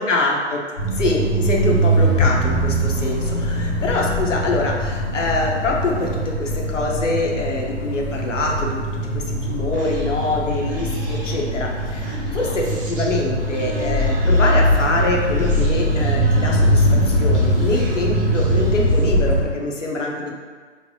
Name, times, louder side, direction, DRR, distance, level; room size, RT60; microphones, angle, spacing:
voice 1, 0.0-20.3, left 2 dB, 85° left, -1 dB, 0.6 m, -24 dB
sound 1, 0.8-19.4, equal, 25° left, 0.4 m, -21 dB
Human voice, 9.7-19.2, right 2 dB, 45° right, 0.7 m, -34 dB
3.2 x 2.0 x 2.6 m, 1.5 s
figure-of-eight pair, 125°, 36 cm